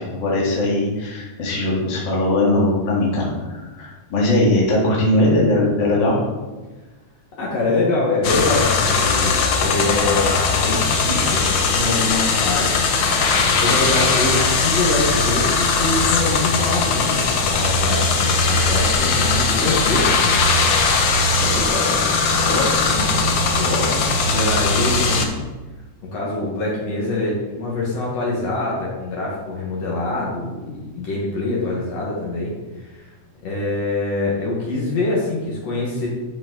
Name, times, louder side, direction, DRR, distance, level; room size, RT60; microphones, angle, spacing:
voice 1, 0.0-6.3, left 1 dB, 40° left, -5 dB, 2.4 m, -20 dB
voice 2, 7.4-12.9 13.4-20.5 20.9-25.4 26.0-32.5 32.8-33.1 33.4-36.1, left 2 dB, 60° left, -5 dB, 2.6 m, -25 dB
sound 1, 8.2-25.2, left 4 dB, 90° left, 1.0 m, -19 dB
11.0 x 5.1 x 3.9 m, 1.2 s
omnidirectional pair, 3.4 m